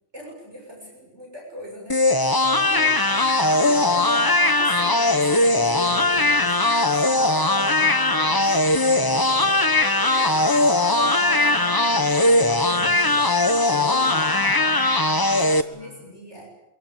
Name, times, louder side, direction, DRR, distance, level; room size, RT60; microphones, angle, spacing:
voice 1, 0.1-2.6 4.4-7.1 7.6-8.6 8.9-10.7 11.2-14.5 15.0-16.5, equal, 60° right, -1 dB, 7.6 m, -42 dB
sound 1, 1.9-15.6, left 2 dB, 20° left, 1.1 m, -19 dB
voice 2, 2.5-4.0 7.8-8.9 10.3-10.8 11.3-11.6 15.7-15.9, equal, 45° right, 1 dB, 8.4 m, -41 dB
25.5 x 23.0 x 8.7 m, 0.86 s
omnidirectional pair, 1.3 m